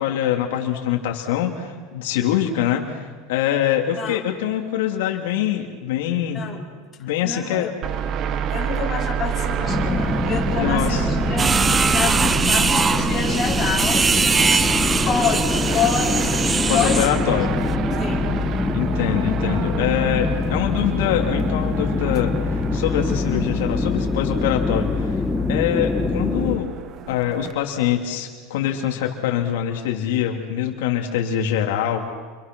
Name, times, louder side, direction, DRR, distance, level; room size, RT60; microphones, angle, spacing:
voice 1, 0.0-6.6 7.0-7.7 10.6-11.1 16.7-17.5 18.7-25.1 25.5-26.7 27.1-32.1, left 10 dB, 80° left, 1 dB, 2.8 m, -24 dB
voice 2, 7.2-7.8 8.3-11.6 11.9-14.1 14.5-14.8 15.1-16.4 16.7-17.4 17.9-18.3, left 6 dB, 20° left, -3 dB, 4.9 m, -27 dB
sound 1, 7.8-27.5, right 9 dB, 35° right, 1.0 m, -29 dB
sound 2, 9.7-26.6, left 3 dB, 5° left, 1.4 m, -24 dB
sound 3, 11.4-17.2, right 5 dB, 15° right, 0.6 m, -22 dB
28.5 x 26.0 x 6.2 m, 1.5 s
supercardioid pair, 150°, 0 cm